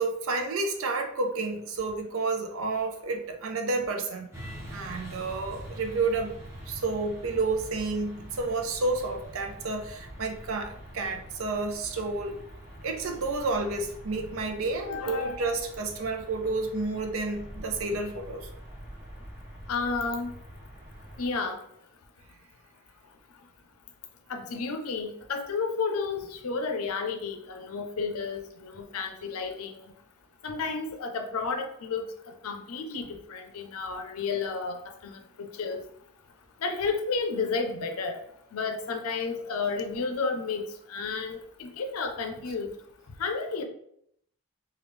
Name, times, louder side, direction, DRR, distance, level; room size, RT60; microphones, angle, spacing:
voice 1, 0.0-4.3 4.7-6.4 6.7-12.4 12.8-18.5, right 3 dB, 75° right, 3 dB, 0.5 m, -30 dB
sound 1, 4.3-21.3, equal, 10° right, 0.6 m, -45 dB
voice 2, 14.8-15.5 19.7-20.3 21.2-21.6 24.3-29.9 30.4-32.1 32.4-35.8 36.6-38.2 38.5-42.7 43.2-43.6, left 4 dB, 85° left, 5 dB, 0.5 m, -32 dB
3.2 x 2.3 x 3.3 m, 0.72 s
head